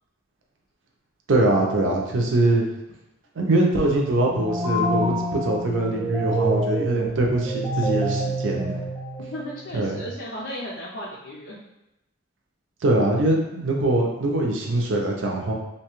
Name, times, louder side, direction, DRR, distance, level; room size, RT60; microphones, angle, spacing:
voice 1, 1.3-2.6 3.4-8.8 9.7-10.0 12.8-15.5, right 2 dB, 90° right, 0 dB, 0.5 m, -22 dB
sound 1, 4.2-9.7, right 1 dB, 10° right, 0.7 m, -27 dB
voice 2, 9.3-11.6, equal, 70° left, -6 dB, 0.4 m, -35 dB
2.8 x 2.2 x 3.0 m, 0.90 s
head